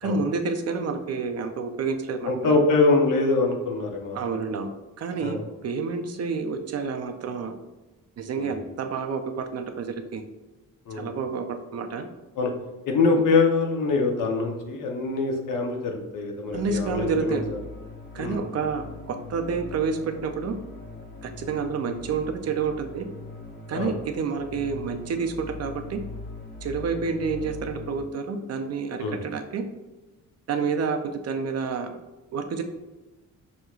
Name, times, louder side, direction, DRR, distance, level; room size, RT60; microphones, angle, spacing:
voice 1, 0.0-2.6 4.1-4.7 5.0-5.4 5.6-7.6 8.2-10.2 10.9-12.1 16.5-17.5 18.1-20.6 21.2-23.1 23.7-26.0 26.6-29.6 30.5-32.0 32.3-32.6, right 5 dB, 50° right, 6 dB, 0.5 m, -29 dB
voice 2, 2.3-4.2 5.2-5.4 8.4-8.5 10.9-11.1 12.4-12.5 12.9-17.6 18.2-18.4 23.7-23.9 29.0-29.2, left 3 dB, 75° left, 2 dB, 0.8 m, -24 dB
sound 1, 16.5-28.0, left 3 dB, 30° left, 0.6 m, -41 dB
6.2 x 2.8 x 2.4 m, 1.1 s
cardioid pair, 130°, 33 cm